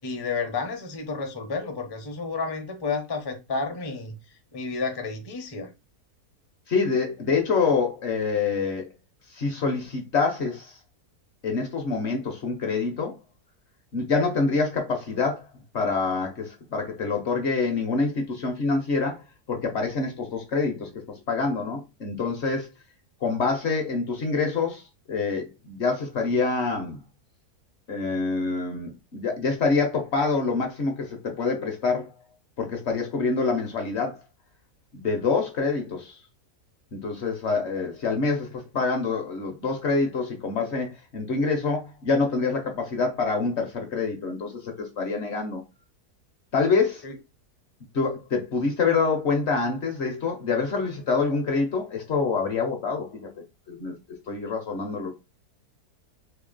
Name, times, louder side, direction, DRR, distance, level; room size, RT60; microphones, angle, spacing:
voice 1, 0.0-4.1 4.5-5.7 47.0-47.1, left 4 dB, 30° left, 0.5 m, -31 dB
voice 2, 6.7-8.9 9.3-10.8 11.4-13.2 13.9-15.4 15.7-19.2 19.5-20.9 21.3-22.7 23.2-24.8 25.1-27.0 27.9-32.1 32.6-34.2 34.9-36.2 36.9-45.6 46.5-47.0 47.9-53.2 53.7-53.9 54.3-55.1, left 4 dB, 55° left, 0.8 m, -26 dB
2.9 x 2.8 x 3.8 m
omnidirectional pair, 1.6 m